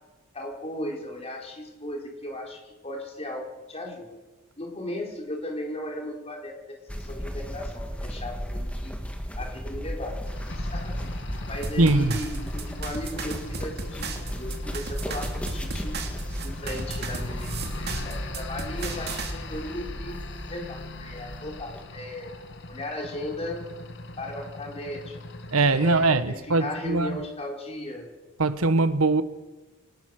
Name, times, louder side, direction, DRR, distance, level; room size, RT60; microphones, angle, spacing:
voice 1, 0.3-4.2 4.6-8.9 9.4-10.1 10.6-11.1 11.5-15.9 16.4-17.5 17.8-20.2 20.5-22.3 22.7-23.6 24.2-25.4 25.7-28.1, left 1 dB, 30° left, 4.5 m, -36 dB
sound 1, 6.9-21.8, equal, 5° left, 2.1 m, -35 dB
sound 2, 10.2-26.2, left 2 dB, 55° left, 1.8 m, -40 dB
sound 3, 11.6-19.3, right 4 dB, 50° right, 2.7 m, -36 dB
voice 2, 11.8-12.2 25.5-27.2 28.4-29.2, right 2 dB, 85° right, 1.4 m, -21 dB
24.0 x 19.5 x 6.6 m
head